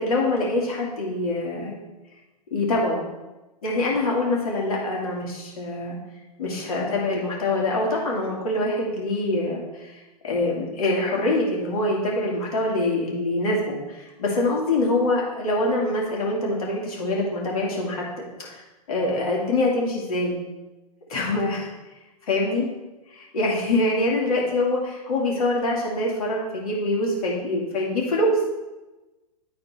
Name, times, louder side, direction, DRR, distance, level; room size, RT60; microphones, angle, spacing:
voice 1, 0.0-1.7 2.5-3.0 3.6-6.0 6.4-10.0 10.2-18.6 18.9-20.4 21.1-21.7 22.3-22.7 23.1-28.4, left 2 dB, 65° left, -3 dB, 2.6 m, -24 dB
11.5 x 4.4 x 4.4 m, 1.1 s
figure-of-eight pair, 105°, 20 cm